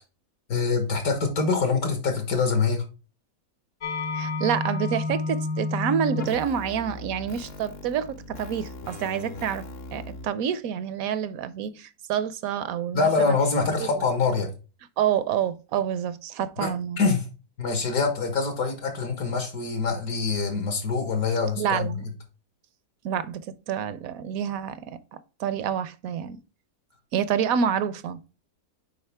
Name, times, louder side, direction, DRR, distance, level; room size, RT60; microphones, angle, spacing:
voice 1, 0.5-2.8 12.9-14.5 16.6-16.7 17.0-17.3 17.6-21.9, left 4 dB, 70° left, 1.9 m, -24 dB
sound 1, 3.8-10.3, left 3 dB, 50° left, 0.9 m, -32 dB
voice 2, 4.1-9.6 9.9-13.4 13.8-13.9 15.0-17.0 21.6-22.0 23.0-25.0 25.4-26.4 27.1-28.2, right 8 dB, 70° right, 1.0 m, -28 dB
6.5 x 4.9 x 3.3 m
omnidirectional pair, 1.6 m